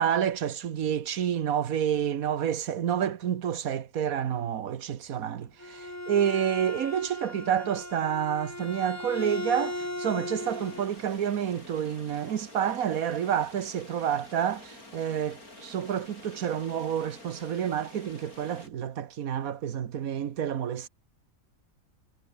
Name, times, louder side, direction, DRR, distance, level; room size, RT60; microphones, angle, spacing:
voice 1, 0.0-20.9, right 9 dB, 75° right, 1.5 m, -29 dB
Bowed string instrument, 5.4-10.9, left 1 dB, 10° left, 1.8 m, -37 dB
sound 1, 10.4-18.7, left 2 dB, 85° left, 7.9 m, -49 dB
omnidirectional pair, 1.5 m